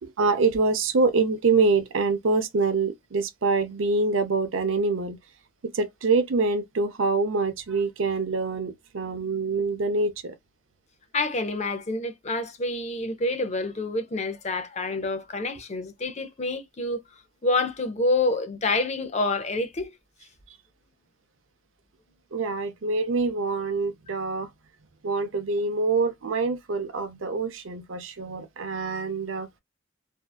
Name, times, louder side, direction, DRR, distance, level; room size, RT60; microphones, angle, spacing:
voice 1, 0.0-5.2 5.6-10.3 20.5-20.6 22.3-24.5 25.0-29.5, right 3 dB, 80° right, 0.6 m, -25 dB
voice 2, 11.1-17.0 17.4-19.9, left 2 dB, 35° left, 0.5 m, -27 dB
2.6 x 2.3 x 2.3 m
head